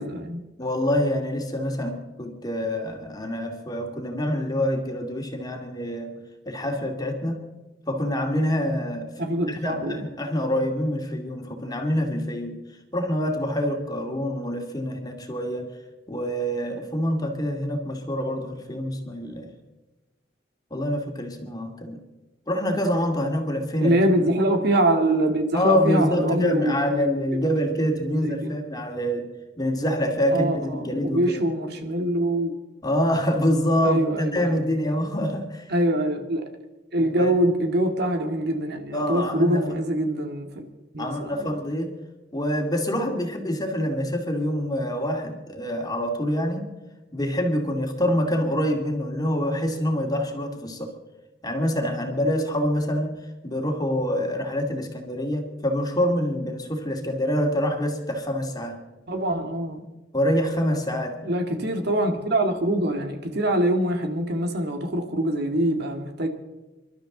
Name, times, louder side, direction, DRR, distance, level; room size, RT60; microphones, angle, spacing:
voice 1, 0.0-0.4 9.2-10.1 23.8-27.1 28.2-28.5 30.3-32.5 33.8-34.6 35.7-36.6 36.9-40.7 40.9-41.5 59.1-59.8 61.2-66.3, right 1 dB, 60° right, 4 dB, 2.0 m, -24 dB
voice 2, 0.6-6.1 6.5-7.5 7.9-9.1 9.5-12.6 12.9-15.7 16.1-19.5 20.7-22.0 22.5-24.3 25.5-29.3 29.6-31.4 32.8-35.6 37.0-37.3 38.9-39.6 41.0-42.0 42.3-46.7 47.1-50.9 51.4-58.8 60.1-61.2, equal, 20° left, 2 dB, 2.3 m, -26 dB
28.0 x 12.5 x 3.9 m, 1.1 s
head